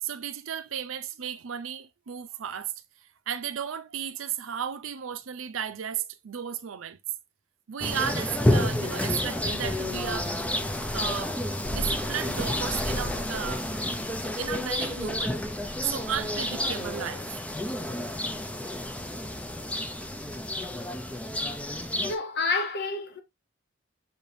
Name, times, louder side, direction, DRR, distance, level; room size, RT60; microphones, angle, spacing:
voice 1, 0.0-2.7 3.3-7.0 7.7-10.3 10.9-11.4 11.7-13.7 14.4-15.4 15.8-17.4, right 8 dB, 75° right, 0.5 m, -34 dB
sound 1, 7.8-22.1, left 1 dB, 5° left, 0.5 m, -30 dB
voice 2, 22.0-23.2, left 3 dB, 55° left, 0.9 m, -29 dB
5.6 x 3.4 x 2.6 m
head